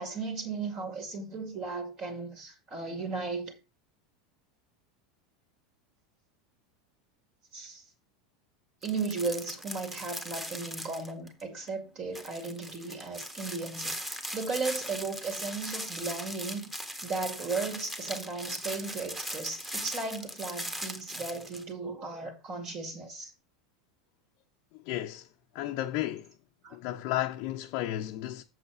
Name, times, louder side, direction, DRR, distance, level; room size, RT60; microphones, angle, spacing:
voice 1, 0.0-3.5 7.5-7.8 8.8-16.7 17.0-23.3 26.6-26.8, right 4 dB, 40° right, 2.3 m, -36 dB
sound 1, 8.8-11.4 11.7-11.8 12.1-21.6, equal, 10° right, 1.6 m, -39 dB
voice 2, 24.7-25.3 25.5-26.3 26.7-28.4, left 14 dB, 50° left, 0.8 m, -33 dB
7.8 x 7.2 x 4.5 m
figure-of-eight pair, 80°, 2 cm